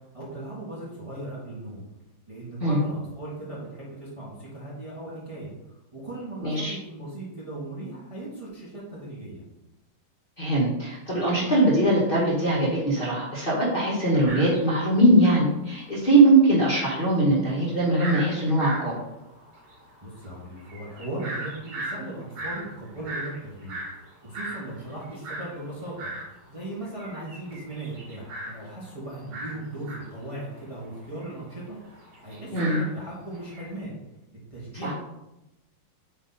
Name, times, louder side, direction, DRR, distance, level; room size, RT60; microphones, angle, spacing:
voice 1, 0.1-1.8 2.3-9.4 20.0-23.8 24.2-26.1 26.5-33.9 34.5-34.9, right 1 dB, 15° right, -7 dB, 1.4 m, -38 dB
voice 2, 6.4-6.7 10.4-18.9 32.5-32.8 34.8-34.9, right 1 dB, 25° left, -8 dB, 1.6 m, -21 dB
sound 1, 14.3-15.5 15.7-15.8 16.1-26.3 26.7-33.7, right 2 dB, 75° right, 2.4 m, -38 dB
8.5 x 3.1 x 4.0 m, 0.92 s
omnidirectional pair, 2.3 m